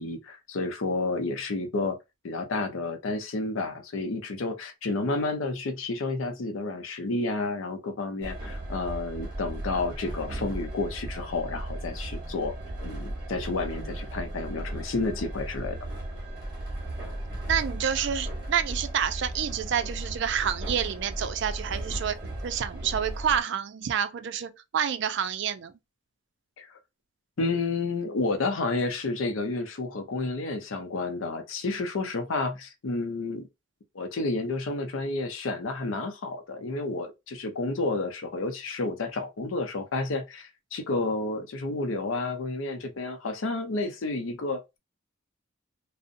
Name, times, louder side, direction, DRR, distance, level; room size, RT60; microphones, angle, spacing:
voice 1, 0.0-2.0 2.2-12.5 12.8-15.8 26.6-26.8 27.4-33.5 33.9-44.6, left 3 dB, 90° left, 0.5 m, -30 dB
Train, 8.2-23.4, right 1 dB, 25° right, 1.0 m, -36 dB
voice 2, 17.5-22.2 22.4-25.7, right 8 dB, 60° right, 0.4 m, -28 dB
2.6 x 2.0 x 2.5 m
head